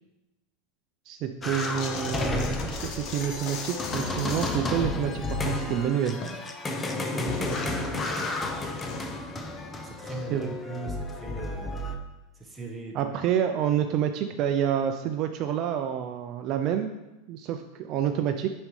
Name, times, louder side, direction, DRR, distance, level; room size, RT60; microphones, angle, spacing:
voice 1, 1.1-6.2 10.1-10.5 12.9-16.9 17.3-18.5, right 9 dB, 45° right, 6 dB, 0.4 m, -28 dB
sound 1, 1.4-12.0, left 2 dB, 15° left, 0.7 m, -32 dB
sound 2, 1.5-4.7 5.0-6.4 6.7-9.2, left 5 dB, 45° left, 1.0 m, -39 dB
voice 2, 6.7-9.0 9.8-11.9 12.3-13.1, right 3 dB, 10° right, 0 dB, 1.2 m, -40 dB
8.7 x 5.2 x 3.2 m, 1.0 s
supercardioid pair, 130°, 0 cm